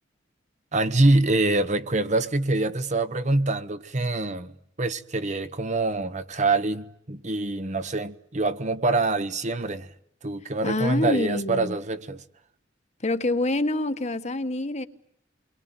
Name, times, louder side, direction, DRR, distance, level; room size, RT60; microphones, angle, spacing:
voice 1, 0.7-9.9 10.2-12.2, right 2 dB, 40° right, 1.3 m, -25 dB
voice 2, 10.6-11.8 13.0-14.9, left 2 dB, 40° left, 1.6 m, -26 dB
29.5 x 22.5 x 9.1 m
head